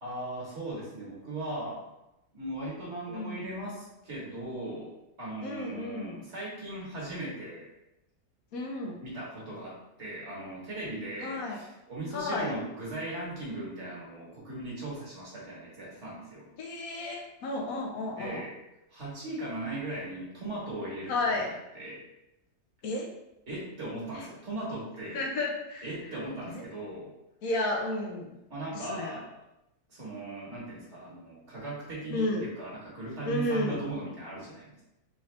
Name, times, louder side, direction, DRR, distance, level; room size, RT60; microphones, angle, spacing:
voice 1, 0.0-1.8 2.3-4.9 5.2-7.7 9.0-16.5 18.2-18.5 18.9-21.4 21.7-22.0 23.5-25.2 25.8-27.1 28.5-29.3 29.9-34.8, right 1 dB, 50° right, -6 dB, 1.4 m, -38 dB
voice 2, 3.1-3.5 5.4-6.2 8.5-9.0 11.2-11.6 12.1-12.6 16.6-18.4 21.1-21.5 22.8-23.1 24.1-24.3 25.1-25.9 26.5-26.6 27.4-28.4 28.7-29.2 32.1-32.5 33.2-33.8, left 2 dB, 75° left, 1 dB, 1.0 m, -32 dB
3.8 x 2.5 x 3.2 m, 0.89 s
omnidirectional pair, 1.6 m